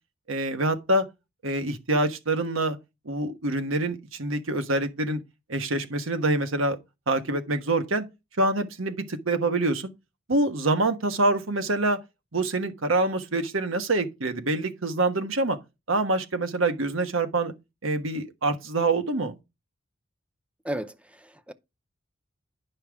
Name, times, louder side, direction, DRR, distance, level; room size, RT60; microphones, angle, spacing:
voice 1, 0.3-1.1 1.4-2.8 3.0-5.2 5.5-6.8 7.1-8.0 8.4-9.9 10.3-12.0 12.3-15.6 15.9-17.5 17.8-19.4, right 2 dB, 90° right, 1.2 m, -25 dB
voice 2, 20.6-21.5, right 1 dB, 5° right, 0.6 m, -34 dB
9.9 x 5.7 x 3.5 m
head